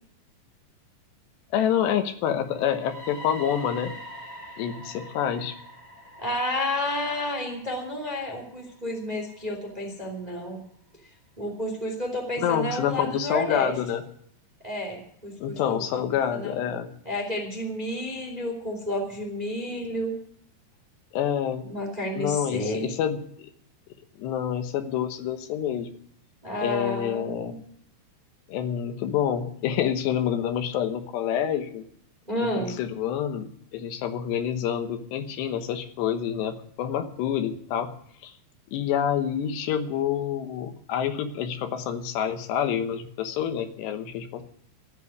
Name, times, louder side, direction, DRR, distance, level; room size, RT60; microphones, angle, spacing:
voice 1, 1.5-3.9 4.6-5.5 12.4-14.0 15.4-16.9 21.1-21.6 22.1-23.5 24.2-25.9 26.6-27.5 28.5-31.8 32.4-37.9 38.2-38.3 38.7-44.4, left 9 dB, 80° left, 8 dB, 3.3 m, -27 dB
sound 1, 2.5-10.4, equal, 25° left, 3.3 m, -45 dB
voice 2, 6.2-10.6 11.4-13.7 14.6-16.6 17.0-20.1 21.7-22.9 26.4-27.6 32.3-32.7, left 1 dB, 15° right, 2 dB, 2.0 m, -31 dB
13.5 x 8.3 x 9.4 m, 0.66 s
omnidirectional pair, 4.9 m